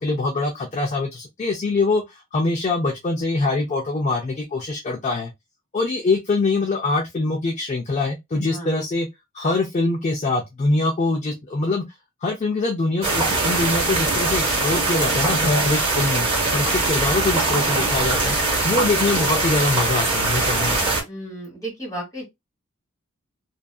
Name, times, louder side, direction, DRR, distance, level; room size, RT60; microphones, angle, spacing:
voice 1, 0.0-5.3 5.7-9.1 9.3-11.8 12.2-16.3 16.5-18.4 18.6-20.8, left 3 dB, 35° left, 0.4 m, -23 dB
sound 1, 13.0-21.0, right 3 dB, 25° right, 0.9 m, -22 dB
voice 2, 21.1-22.2, right 1 dB, 15° left, 1.5 m, -34 dB
2.6 x 2.4 x 2.2 m
head